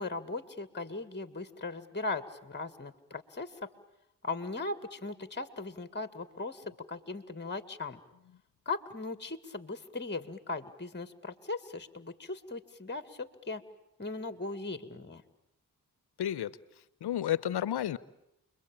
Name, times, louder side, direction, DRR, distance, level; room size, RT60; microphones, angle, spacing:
voice 1, 0.0-3.7 4.2-8.0 8.7-13.6 14.0-15.2, left 3 dB, 25° left, 11 dB, 2.0 m, -38 dB
voice 2, 16.2-16.5 17.0-18.0, left 11 dB, 85° left, 18 dB, 1.0 m, -31 dB
29.5 x 22.5 x 8.9 m, 0.85 s
cardioid pair, 50°, 39 cm